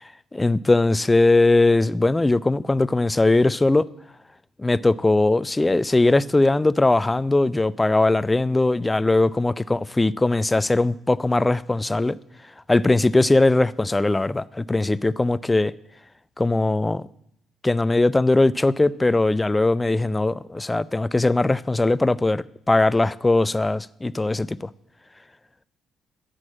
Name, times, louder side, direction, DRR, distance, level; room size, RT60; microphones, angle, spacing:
voice 1, 0.3-3.9 4.6-12.2 12.7-15.7 16.4-17.0 17.6-24.6, left 2 dB, 20° left, 0.5 m, -20 dB
10.5 x 7.7 x 7.3 m
figure-of-eight pair, 45°, 0 cm